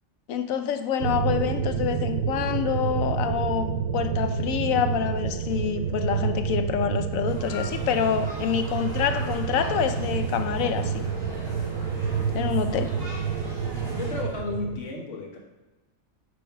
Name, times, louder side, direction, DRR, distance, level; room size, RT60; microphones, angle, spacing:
voice 1, 0.3-11.1 12.3-12.9, left 8 dB, 85° left, 9 dB, 1.0 m, -27 dB
sound 1, 1.0-14.8, right 6 dB, 80° right, 1.0 m, -28 dB
sound 2, 7.2-14.2, left 1 dB, 5° left, 2.1 m, -41 dB
voice 2, 13.9-15.4, left 3 dB, 65° left, 0 dB, 1.5 m, -33 dB
9.4 x 3.4 x 4.6 m, 1.1 s
omnidirectional pair, 1.4 m